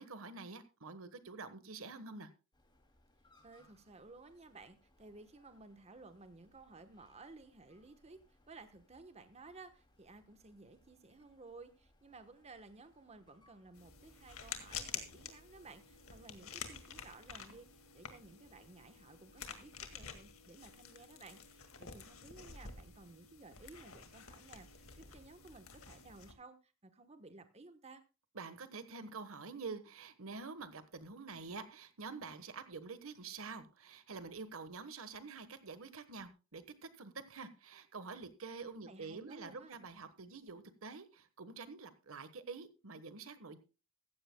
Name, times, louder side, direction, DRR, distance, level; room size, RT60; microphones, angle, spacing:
voice 1, 0.0-2.3 28.3-43.6, right 4 dB, 75° right, 12 dB, 1.3 m, -47 dB
sound 1, 2.5-19.8, left 1 dB, 20° left, 2.6 m, -71 dB
voice 2, 3.4-28.0 38.9-39.8, right 3 dB, 30° right, 10 dB, 1.1 m, -56 dB
sound 2, 13.7-26.3, left 7 dB, 80° left, 2.0 m, -49 dB
15.5 x 14.5 x 2.2 m, 0.31 s
head